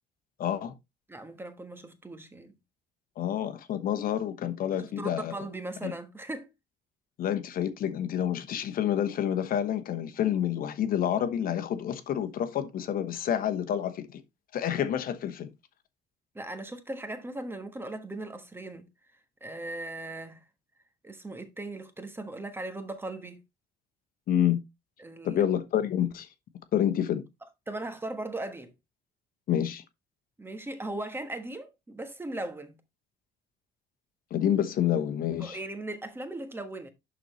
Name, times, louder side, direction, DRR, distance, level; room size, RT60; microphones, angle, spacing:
voice 1, 0.4-0.7 3.2-5.3 5.8-5.9 7.2-14.2 14.5-15.5 24.3-24.6 25.2-26.3 26.7-27.2 29.5-29.8 34.3-35.6, left 10 dB, 60° left, 1.1 m, -28 dB
voice 2, 1.1-2.6 4.8-6.5 16.3-18.9 19.4-20.4 21.0-23.4 25.0-25.4 27.7-28.7 30.4-32.8 35.4-36.9, right 2 dB, 15° right, 1.3 m, -38 dB
11.5 x 4.1 x 3.2 m
cardioid pair, 110°, 17 cm